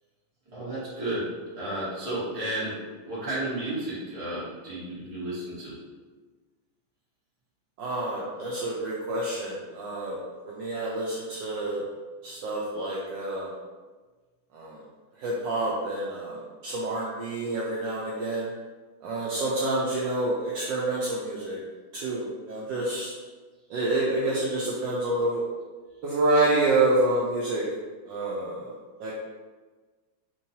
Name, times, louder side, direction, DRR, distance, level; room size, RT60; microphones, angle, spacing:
voice 1, 0.5-5.8, right 1 dB, 20° right, -10 dB, 1.0 m, -33 dB
voice 2, 7.8-10.2 10.5-11.8 12.2-13.5 14.5-14.8 15.2-18.5 19.0-21.6 21.9-23.1 23.7-25.4 26.0-27.6 28.1-28.7 29.0-29.2, right 2 dB, 75° right, -5 dB, 1.1 m, -28 dB
3.7 x 3.0 x 2.7 m, 1.3 s
omnidirectional pair, 2.3 m